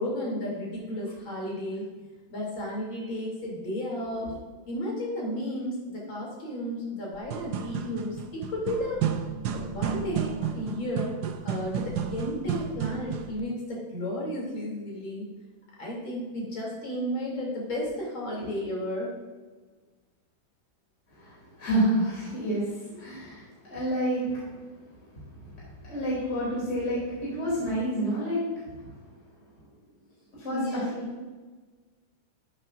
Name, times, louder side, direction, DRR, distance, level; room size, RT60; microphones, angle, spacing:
voice 1, 0.0-1.9 2.3-4.3 4.7-9.0 9.5-10.3 10.5-11.1 11.4-15.3 15.8-19.1 30.5-30.9, left 1 dB, 70° left, -4 dB, 3.7 m, -33 dB
sound 1, 7.1-13.4, right 8 dB, 70° right, 1.0 m, -32 dB
voice 2, 21.2-24.6 25.4-25.5 25.8-28.9 30.3-31.0, right 1 dB, 35° left, -7 dB, 3.2 m, -29 dB
12.0 x 8.3 x 2.5 m, 1.3 s
omnidirectional pair, 2.2 m